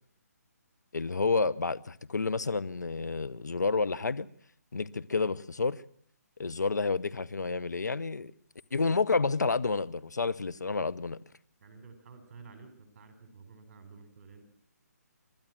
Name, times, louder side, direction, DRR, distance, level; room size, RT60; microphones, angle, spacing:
voice 1, 0.9-4.3 4.7-5.8 6.4-8.3 8.7-11.2, left 4 dB, 80° left, 1.0 m, -30 dB
voice 2, 11.6-14.4, right 4 dB, 45° right, 4.2 m, -51 dB
30.0 x 12.5 x 7.5 m
figure-of-eight pair, 150°, 9 cm